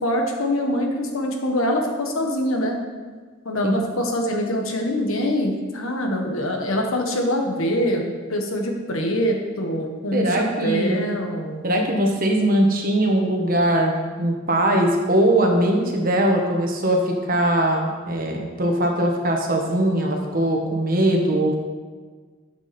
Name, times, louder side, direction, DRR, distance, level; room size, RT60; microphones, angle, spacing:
voice 1, 0.0-2.7 3.4-8.0 8.3-11.6, equal, 80° left, 2 dB, 1.4 m, -24 dB
voice 2, 10.1-11.1 11.6-21.5, right 1 dB, 40° right, 1 dB, 1.3 m, -21 dB
9.9 x 7.2 x 4.3 m, 1.4 s
head